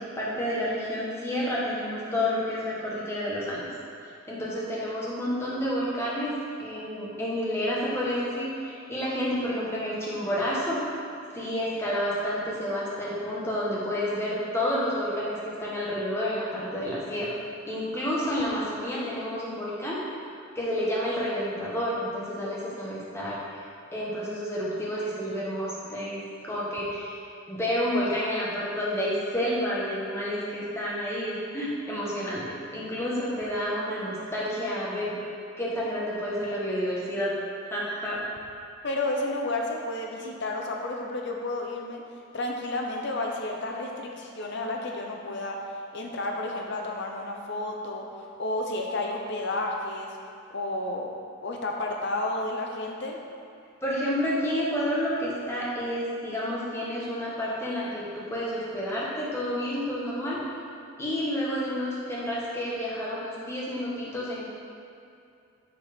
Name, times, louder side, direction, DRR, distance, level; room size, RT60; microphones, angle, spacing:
voice 1, 0.0-3.7 4.3-6.3 6.6-10.8 11.3-17.3 17.7-20.0 20.5-23.4 23.9-27.2 27.5-32.4 32.7-35.2 35.6-37.3 37.7-38.2 53.8-60.4 61.0-64.5, equal, 15° left, -7 dB, 1.3 m, -30 dB
voice 2, 38.8-42.0 42.3-45.6 45.9-50.1 50.5-51.1 51.4-53.2, left 2 dB, 55° left, 0 dB, 0.8 m, -31 dB
6.8 x 4.6 x 5.1 m, 2.6 s
head